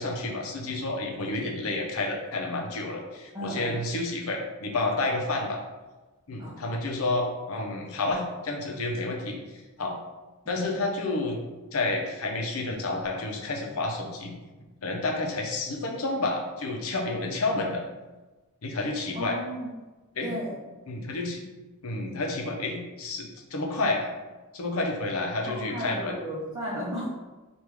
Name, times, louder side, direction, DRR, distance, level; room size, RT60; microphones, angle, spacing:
voice 1, 0.0-5.6 6.3-9.4 9.8-9.9 10.5-11.4 11.7-14.3 14.8-17.8 18.6-19.4 20.2-20.3 20.9-21.5 21.8-24.1 24.5-26.2, left 2 dB, 75° left, 1 dB, 0.7 m, -30 dB
voice 2, 3.3-3.8 6.4-6.8 10.4-10.7 19.1-19.7 20.2-20.5 25.4-27.1, equal, 20° right, -8 dB, 0.7 m, -35 dB
3.5 x 2.6 x 4.6 m, 1.2 s
head